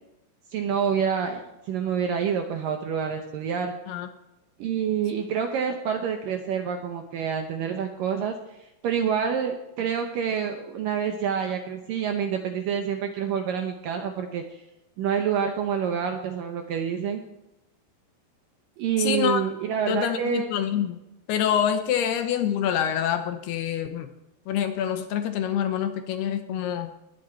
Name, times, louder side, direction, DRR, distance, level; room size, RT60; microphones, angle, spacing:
voice 1, 0.5-3.7 4.6-14.6 15.0-17.2 18.8-20.5, right 7 dB, 75° right, 5 dB, 2.1 m, -27 dB
voice 2, 19.0-19.5 19.9-21.0 21.3-24.1 24.5-26.9, left 9 dB, 70° left, 8 dB, 2.8 m, -26 dB
20.5 x 10.5 x 4.5 m, 0.91 s
omnidirectional pair, 5.1 m